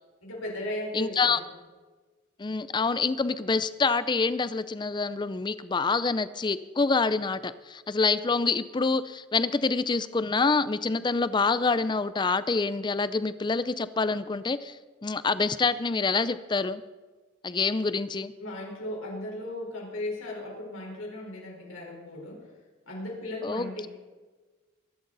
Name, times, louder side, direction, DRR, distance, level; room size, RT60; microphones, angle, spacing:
voice 1, 0.2-1.3 18.4-22.5 22.9-23.9, left 1 dB, 80° left, -2 dB, 4.4 m, -36 dB
voice 2, 0.9-1.4 2.4-14.8 15.0-16.8 17.4-18.3 23.4-23.9, left 4 dB, 20° left, 15 dB, 0.5 m, -26 dB
23.0 x 11.5 x 4.0 m, 1.3 s
head